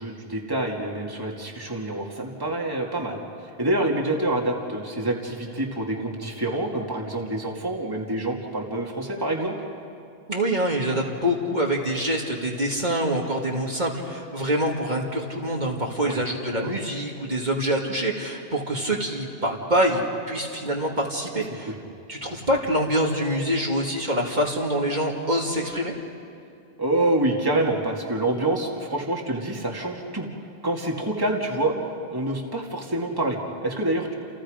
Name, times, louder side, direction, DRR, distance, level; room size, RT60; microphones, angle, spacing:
voice 1, 0.0-3.2 3.6-9.5 16.0-16.2 16.6-16.7 21.3-21.8 26.8-30.3 30.6-31.7 32.1-34.1, right 1 dB, 20° right, -1 dB, 2.4 m, -27 dB
voice 2, 10.3-21.7 22.1-25.9, equal, 45° right, -2 dB, 2.4 m, -25 dB
30.0 x 29.0 x 5.1 m, 2.6 s
omnidirectional pair, 1.1 m